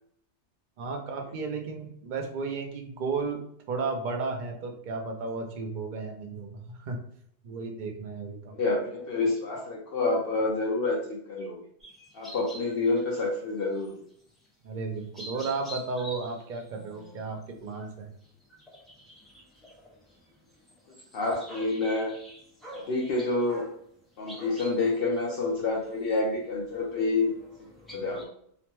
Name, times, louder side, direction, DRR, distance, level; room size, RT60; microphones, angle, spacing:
voice 1, 0.8-7.0 7.4-8.5 14.6-18.1, right 4 dB, 55° right, 3 dB, 0.6 m, -34 dB
voice 2, 8.6-11.6 12.1-14.0 21.1-22.1 22.7-23.6 24.2-27.3 27.9-28.3, left 3 dB, 60° left, -3 dB, 0.8 m, -28 dB
sound 1, 11.8-13.2 13.5-13.9 14.3-14.5 15.0-23.8 24.3-28.3, equal, ahead, 0.6 m, -47 dB
2.9 x 2.1 x 2.9 m, 0.66 s
omnidirectional pair, 1.2 m